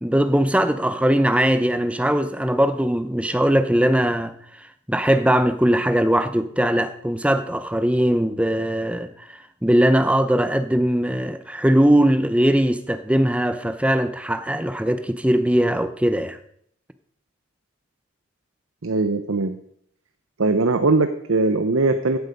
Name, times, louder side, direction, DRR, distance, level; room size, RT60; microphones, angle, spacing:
voice 1, 0.0-4.3 4.9-16.4, right 1 dB, 5° right, 0.6 m, -20 dB
voice 2, 18.8-19.6 20.4-22.2, right 3 dB, 75° right, 0.8 m, -20 dB
15.5 x 8.0 x 5.3 m
head